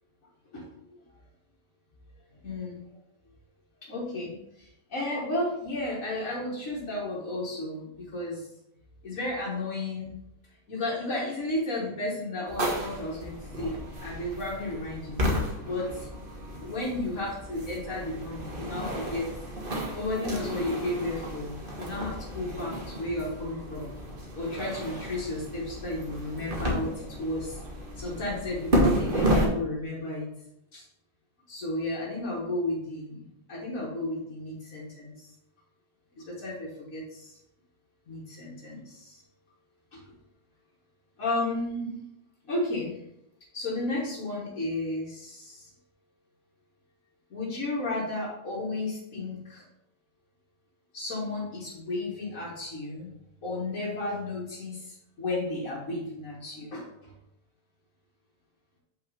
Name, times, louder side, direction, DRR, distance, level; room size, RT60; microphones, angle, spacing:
voice 1, 0.5-1.0 2.4-2.9 3.8-8.5 9.0-10.2 10.7-15.2 15.6-16.1 16.6-19.3 19.9-23.9 24.4-27.6 28.0-30.3 30.7-30.8 31.5-35.3 36.2-37.4 38.1-39.2 39.9-40.1 41.2-42.0 42.4-43.0 43.5-45.7 47.3-49.6 50.9-53.1 53.4-57.1, left 2 dB, 80° left, -7 dB, 2.1 m, -33 dB
sound 1, 12.5-29.5, equal, 40° right, 1.4 m, -32 dB
5.7 x 4.4 x 5.0 m, 0.78 s
omnidirectional pair, 1.4 m